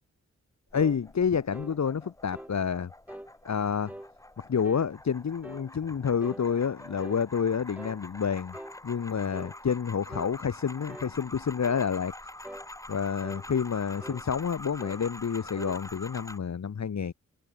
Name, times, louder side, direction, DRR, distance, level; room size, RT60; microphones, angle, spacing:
voice 1, 0.7-2.9 3.4-3.9 4.5-8.5 8.8-12.1 12.9-17.1, left 7 dB, 65° left, 2.0 m, -29 dB
sound 1, 0.7-16.4, left 1 dB, 10° left, 2.0 m, -46 dB
sound 2, 0.7-1.0 1.5-1.8 2.3-2.6 3.1-3.3 3.9-4.1 4.6-4.9 5.4-5.7 6.2-7.2 7.8-8.0 8.5-8.8 9.3-9.6 10.1-10.3 10.9-11.1 11.7-11.9 12.4-12.7 13.2-13.5 14.0-14.2 14.8-15.0 15.6-15.8, right 1 dB, 5° right, 1.4 m, -44 dB
wide cardioid pair, 165°, 30 cm